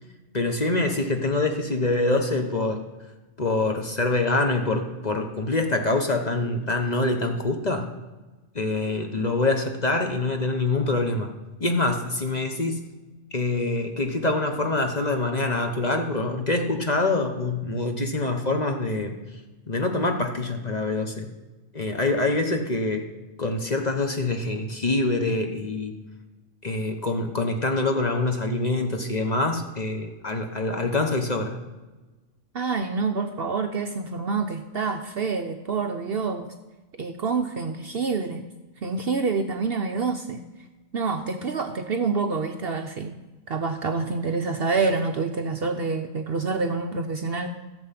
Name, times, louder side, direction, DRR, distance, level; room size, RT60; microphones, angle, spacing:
voice 1, 0.3-2.8 3.4-7.9 8.5-11.3 11.6-12.8 13.3-19.2 19.7-21.3 21.7-23.1 23.4-26.0 26.6-31.6, left 2 dB, 35° left, 4 dB, 1.1 m, -25 dB
voice 2, 32.5-36.5 37.0-38.5 38.8-40.4 40.9-43.2 43.5-47.5, right 4 dB, 55° right, 6 dB, 0.8 m, -27 dB
15.0 x 7.2 x 5.8 m, 1.2 s
omnidirectional pair, 1.4 m